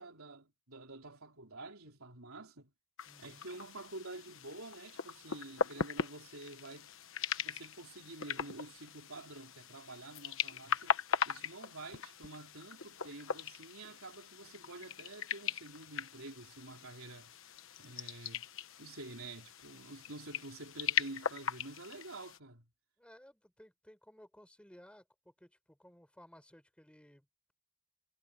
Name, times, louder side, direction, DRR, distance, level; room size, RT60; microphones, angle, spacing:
voice 1, 0.0-2.7 3.2-6.9 7.3-11.0 11.3-17.3 17.8-18.4 18.8-22.7, right 2 dB, 65° right, 4.0 m, -49 dB
sound 1, 3.0-22.4, left 6 dB, 60° left, 1.2 m, -40 dB
voice 2, 3.1-3.6 23.0-27.5, equal, 5° left, 5.8 m, -59 dB
head